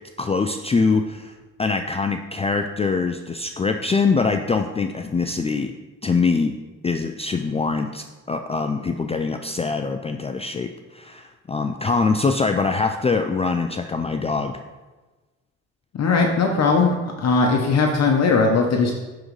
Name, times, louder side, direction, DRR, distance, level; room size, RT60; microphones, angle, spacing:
voice 1, 0.2-5.7 6.0-6.5 6.8-14.6, left 4 dB, 20° left, 5 dB, 0.4 m, -23 dB
voice 2, 16.0-16.9 17.2-18.9, left 4 dB, 55° left, 2 dB, 0.9 m, -18 dB
10.0 x 3.8 x 3.2 m, 1.2 s
supercardioid pair, 70°, 31 cm